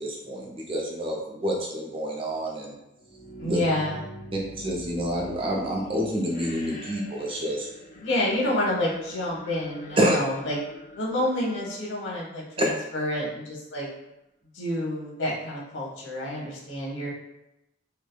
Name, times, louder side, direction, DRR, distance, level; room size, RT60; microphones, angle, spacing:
voice 1, 0.0-2.7 3.4-3.6 4.3-7.7 10.0-10.2 12.6-12.7, right 1 dB, 30° right, -2 dB, 0.5 m, -28 dB
sound 1, 3.0-12.8, equal, 40° left, 0.4 m, -45 dB
voice 2, 3.4-4.0 8.0-10.6 11.0-13.9 14.5-17.1, left 1 dB, 85° left, -3 dB, 0.9 m, -28 dB
3.3 x 2.0 x 2.3 m, 0.87 s
head